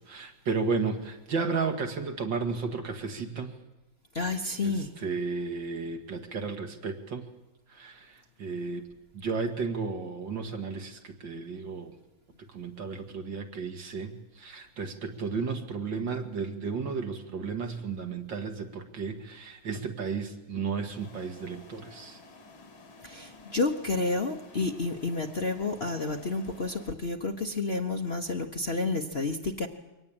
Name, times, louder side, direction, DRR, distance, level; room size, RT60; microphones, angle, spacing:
voice 1, 0.1-3.5 4.2-4.3 4.6-7.3 7.7-8.8 9.1-11.9 12.5-22.2, right 4 dB, 65° right, 5 dB, 2.5 m, -33 dB
voice 2, 4.1-4.9 23.0-29.7, left 3 dB, 40° left, 4 dB, 1.1 m, -30 dB
sound 1, 20.9-26.9, left 3 dB, 75° left, 3.1 m, -52 dB
23.5 x 18.5 x 8.8 m, 1.0 s
omnidirectional pair, 2.2 m